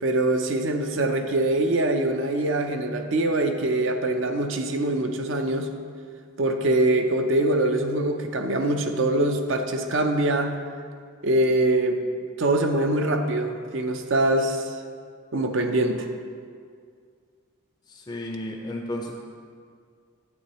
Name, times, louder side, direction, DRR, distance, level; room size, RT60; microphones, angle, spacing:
voice 1, 0.0-5.7 6.4-10.5 11.2-12.0 12.4-14.8 15.3-16.1, right 1 dB, 65° right, 6 dB, 0.6 m, -23 dB
voice 2, 17.9-19.1, left 1 dB, 20° left, 0 dB, 0.4 m, -33 dB
9.4 x 7.8 x 3.1 m, 2.1 s
head